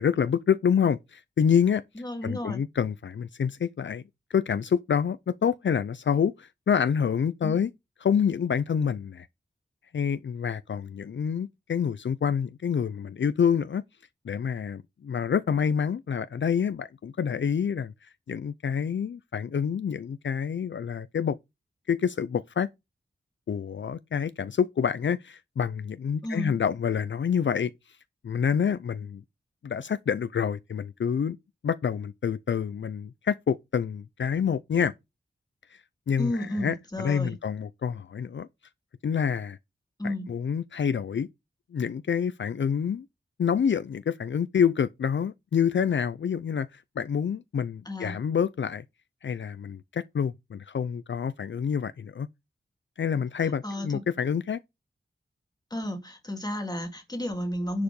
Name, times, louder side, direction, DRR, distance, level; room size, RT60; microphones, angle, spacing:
voice 1, 0.0-1.8 2.2-4.0 4.3-7.7 8.0-9.3 9.9-13.8 14.2-21.4 21.9-22.7 23.5-28.0 28.2-29.2 29.6-31.4 31.6-34.9 35.7-35.8 36.1-38.5 39.0-39.6 40.0-41.3 41.7-43.1 43.4-48.8 49.2-52.3 53.0-54.6, left 7 dB, 70° left, 0.5 m, -27 dB
voice 2, 2.0-2.6 7.4-7.7 26.2-26.6 36.2-37.3 40.0-40.3 47.9-48.1 53.6-54.0 55.7-57.8, left 1 dB, 20° left, 2.3 m, -32 dB
10.5 x 4.9 x 5.3 m
wide cardioid pair, 105°, 20 cm